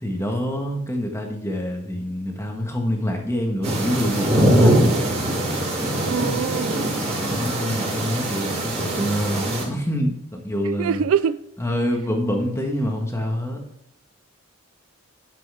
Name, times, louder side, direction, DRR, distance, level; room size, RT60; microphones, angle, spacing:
voice 1, 0.0-5.0 7.1-11.0 11.6-13.6, equal, 10° left, 1.6 m, -26 dB
sound 1, 3.6-9.6, right 1 dB, 30° right, 2.6 m, -22 dB
voice 2, 6.0-7.0 8.5-9.2 10.6-11.4, right 7 dB, 70° right, 0.4 m, -26 dB
10.0 x 7.6 x 3.6 m
head